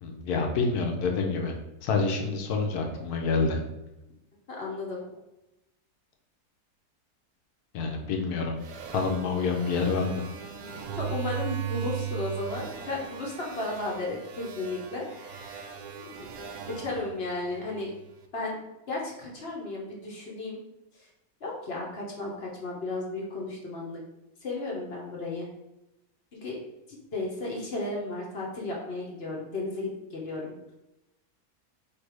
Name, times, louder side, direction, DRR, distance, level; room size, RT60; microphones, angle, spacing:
voice 1, 0.0-1.5 1.8-3.6 7.7-8.6 8.9-10.2, left 4 dB, 75° left, 2 dB, 1.2 m, -27 dB
voice 2, 4.6-5.0 11.0-15.7 16.7-17.9 18.3-18.6 18.9-20.6 20.9-21.1 21.4-24.0 24.4-25.5 26.3-26.6 26.9-30.5, left 2 dB, 45° left, -3 dB, 0.9 m, -34 dB
sound 1, 8.6-18.1, right 8 dB, 90° right, 1.2 m, -38 dB
3.3 x 2.8 x 4.6 m, 0.92 s
omnidirectional pair, 1.7 m